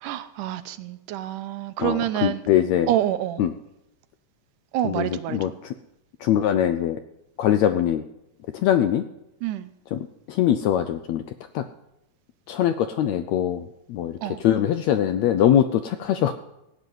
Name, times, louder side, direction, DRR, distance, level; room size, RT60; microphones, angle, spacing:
voice 1, 0.0-2.4 2.9-3.4 4.7-5.4 9.4-9.7 14.2-14.4, right 12 dB, 85° right, 2.2 m, -27 dB
voice 2, 1.8-2.9 3.4-3.5 4.8-5.7 6.2-7.0 7.4-8.0 8.5-9.0 9.9-11.2 11.5-11.6 12.5-16.3, left 10 dB, 80° left, 1.6 m, -22 dB
16.5 x 7.3 x 9.4 m
omnidirectional pair, 3.7 m